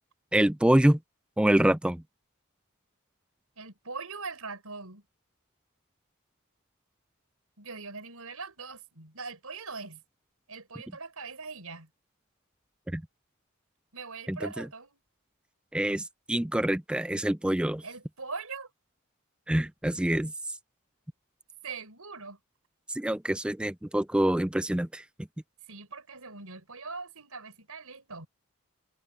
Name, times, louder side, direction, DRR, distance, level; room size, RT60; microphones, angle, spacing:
voice 1, 0.3-1.0 1.4-2.0 12.9-13.0 14.3-14.7 15.7-17.8 19.5-20.3 22.9-25.0, right 1 dB, 5° right, 0.3 m, -26 dB
voice 2, 3.6-5.0 7.6-10.0 10.5-11.9 13.9-15.0 17.8-18.7 21.6-22.4 25.7-28.3, right 4 dB, 85° right, 5.1 m, -41 dB
head